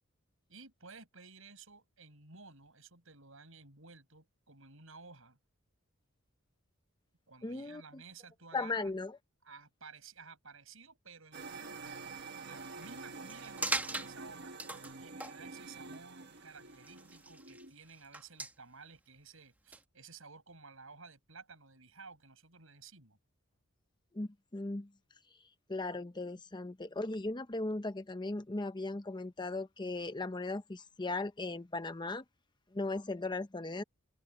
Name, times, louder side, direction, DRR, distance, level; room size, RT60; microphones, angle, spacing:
voice 1, 0.5-5.4 7.3-8.9 9.4-12.0 12.4-14.5 15.0-23.2, right 4 dB, 75° right, 6.9 m, -54 dB
voice 2, 7.4-8.0 8.5-9.2 24.1-24.9 25.7-32.2 32.7-33.8, left 2 dB, 20° left, 0.8 m, -37 dB
sound 1, 11.3-17.7, right 4 dB, 55° right, 1.4 m, -48 dB
sound 2, 12.8-13.0 13.2-14.1 14.6-14.9 15.2-15.3 15.9-16.0 16.7-17.6 17.9-18.5 19.7-19.8, right 2 dB, 10° right, 1.6 m, -38 dB
open air
head